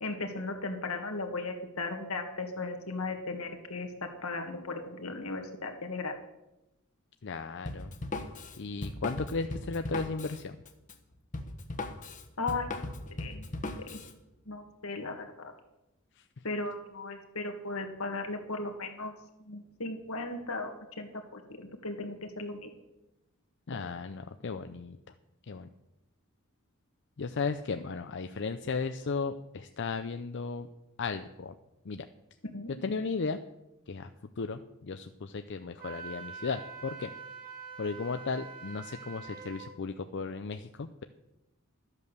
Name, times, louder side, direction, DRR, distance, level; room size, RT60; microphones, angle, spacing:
voice 1, 0.0-3.9 4.2-6.1 12.4-13.5 13.8-14.0 14.5-15.5 16.4-19.1 19.5-22.7 32.5-32.7, left 3 dB, 80° left, 5 dB, 1.9 m, -37 dB
voice 2, 7.2-7.9 8.6-10.6 16.2-16.3 23.7-25.0 25.5-25.7 27.2-30.7 31.0-31.5 31.8-32.0 32.7-33.4 33.9-34.1 34.4-37.1 37.8-41.0, left 4 dB, 55° left, 8 dB, 0.6 m, -35 dB
Drum kit, 7.7-14.1, left 2 dB, 35° left, 1.2 m, -38 dB
Wind instrument woodwind instrument, 35.8-39.7, right 6 dB, 45° right, 2.2 m, -45 dB
13.0 x 8.2 x 6.8 m, 0.93 s
head